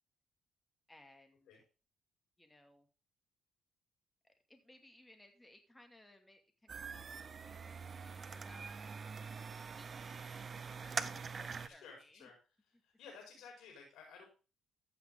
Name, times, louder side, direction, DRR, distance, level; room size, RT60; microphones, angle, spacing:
voice 1, 0.9-1.6 2.4-2.9 4.2-8.9 9.8-12.3 12.7-12.8 13.1-13.2, left 1 dB, 10° left, 5 dB, 2.4 m, -62 dB
sound 1, 6.7-11.7, right 5 dB, 40° right, 0.8 m, -44 dB
voice 2, 11.6-12.3 12.8-14.3, left 5 dB, 85° left, -1 dB, 4.9 m, -54 dB
14.5 x 5.9 x 3.7 m, 0.32 s
cardioid pair, 90°, 0 cm